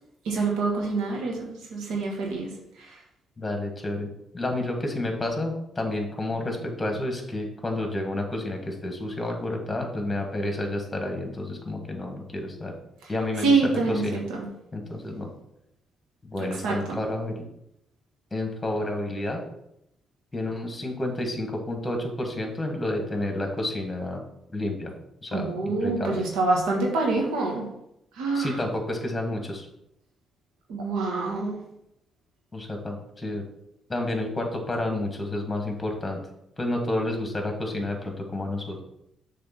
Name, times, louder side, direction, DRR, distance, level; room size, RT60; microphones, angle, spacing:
voice 1, 0.2-2.5 13.4-14.2 16.6-17.0 25.3-27.7 28.2-28.5 30.7-31.6, right 3 dB, 90° right, 0 dB, 1.4 m, -26 dB
voice 2, 3.4-12.7 13.1-14.2 14.7-15.3 16.2-17.4 18.3-19.4 20.3-24.2 24.5-24.9 25.2-26.2 28.3-29.7 32.5-33.4 33.9-36.2 36.6-38.8, left 1 dB, 15° left, 3 dB, 1.8 m, -30 dB
6.7 x 3.7 x 6.0 m, 0.81 s
cardioid pair, 90°, 0 cm